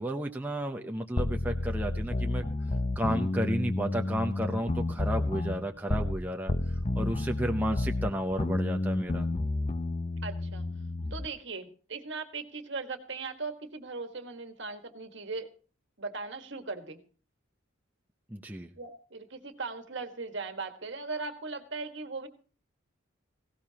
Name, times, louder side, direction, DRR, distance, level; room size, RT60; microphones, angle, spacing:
voice 1, 0.0-2.4 3.0-6.5 7.0-9.3 18.3-18.7, equal, 10° right, 2 dB, 0.7 m, -32 dB
sound 1, 1.2-6.2 6.5-11.3, left 2 dB, 30° left, 0.7 m, -31 dB
voice 2, 10.2-10.7 11.1-15.5 16.0-17.0 18.8-22.3, right 4 dB, 60° right, 7 dB, 1.6 m, -38 dB
18.5 x 17.0 x 2.9 m, 0.38 s
head